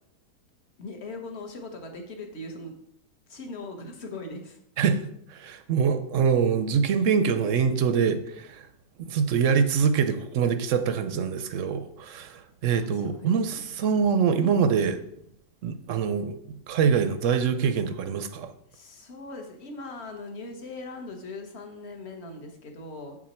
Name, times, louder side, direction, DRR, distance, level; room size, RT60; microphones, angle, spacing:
voice 1, 0.8-2.7 3.3-4.6 12.7-13.7 14.4-14.6 18.7-23.2, left 2 dB, 45° left, 4 dB, 1.4 m, -40 dB
voice 2, 4.8-8.7 9.0-15.0 15.6-16.4 16.7-18.5, right 6 dB, 65° right, 9 dB, 0.8 m, -24 dB
7.5 x 6.3 x 4.4 m, 0.73 s
omnidirectional pair, 1.8 m